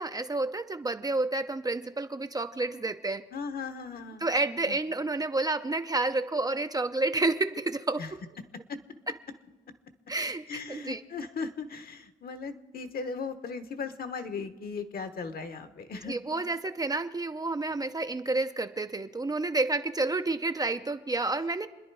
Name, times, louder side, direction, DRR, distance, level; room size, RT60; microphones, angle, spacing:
voice 1, 0.0-3.2 4.2-8.0 10.1-11.0 16.1-21.7, right 2 dB, 20° right, 8 dB, 0.6 m, -30 dB
voice 2, 3.3-4.3 4.7-4.8 8.0-8.1 8.7-8.8 10.5-16.2, left 5 dB, 50° left, 10 dB, 1.2 m, -37 dB
27.5 x 10.5 x 4.8 m, 1.2 s
cardioid pair, 90°, 20 cm